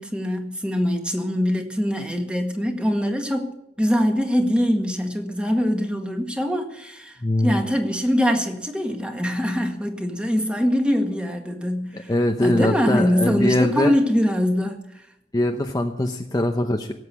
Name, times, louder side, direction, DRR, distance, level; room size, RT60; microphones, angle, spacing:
voice 1, 0.0-3.5 3.8-12.1 12.4-14.9, equal, 5° right, 4 dB, 1.8 m, -23 dB
voice 2, 7.2-7.5 11.9-13.9 15.3-16.9, left 1 dB, 20° left, 4 dB, 0.8 m, -22 dB
17.5 x 8.1 x 8.4 m, 0.79 s
head